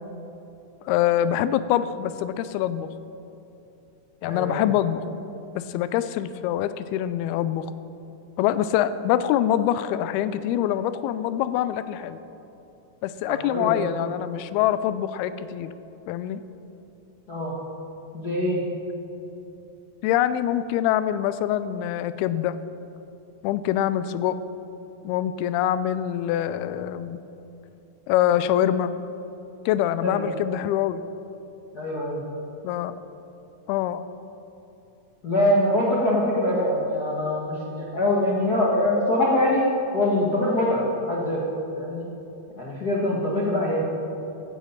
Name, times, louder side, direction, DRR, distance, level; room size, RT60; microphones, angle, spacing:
voice 1, 0.9-2.9 4.2-5.0 5.6-7.7 8.4-12.2 13.0-15.7 16.1-16.4 20.0-22.6 23.4-24.4 25.0-27.2 28.1-28.9 29.7-31.0 32.6-32.9 33.7-34.0, left 11 dB, 90° left, 13 dB, 2.5 m, -24 dB
voice 2, 4.2-4.6 13.3-13.9 17.3-17.5 18.1-18.6 30.0-30.2 31.7-32.2 35.2-39.7 39.9-41.4 41.7-42.1 42.6-43.8, left 1 dB, 55° left, -5 dB, 1.1 m, -24 dB
16.0 x 10.5 x 5.7 m, 2.9 s
omnidirectional pair, 4.4 m